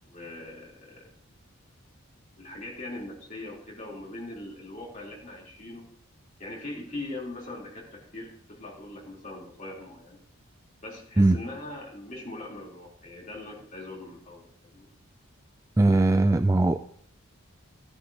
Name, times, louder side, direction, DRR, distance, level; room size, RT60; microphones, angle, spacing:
voice 1, 0.0-1.1 2.4-5.9 6.4-10.2 10.8-14.9, left 2 dB, 35° left, -3 dB, 3.8 m, -41 dB
voice 2, 15.8-16.8, right 2 dB, 15° right, 9 dB, 0.3 m, -20 dB
15.0 x 10.0 x 3.0 m, 0.63 s
head